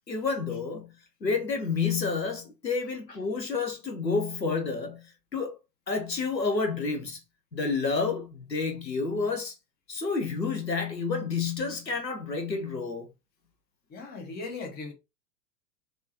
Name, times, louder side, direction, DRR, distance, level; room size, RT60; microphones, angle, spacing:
voice 1, 0.1-0.9 1.2-5.1 5.3-5.5 5.9-7.2 7.5-9.5 9.9-13.1, left 4 dB, 85° left, 1.0 m, -29 dB
voice 2, 13.9-14.9, left 3 dB, 20° left, 1.0 m, -38 dB
3.4 x 3.1 x 2.8 m
figure-of-eight pair, 90°, 49 cm